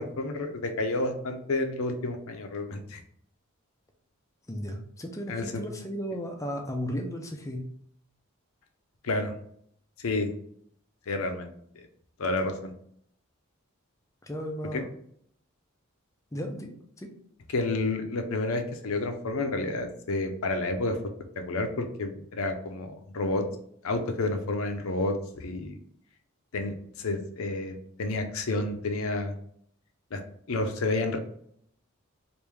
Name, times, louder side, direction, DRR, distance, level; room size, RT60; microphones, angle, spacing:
voice 1, 0.0-3.0 5.3-5.6 9.0-9.3 10.0-10.3 11.1-11.5 12.2-12.7 14.7-14.8 17.5-21.0 21.4-23.4 23.8-25.7 26.5-29.3 30.1-30.2 30.5-31.2, left 2 dB, 70° left, 6 dB, 0.6 m, -30 dB
voice 2, 4.5-7.6 14.2-14.8 16.3-16.7 17.0-17.1, equal, 15° left, 3 dB, 0.4 m, -34 dB
3.4 x 2.5 x 3.2 m, 0.66 s
head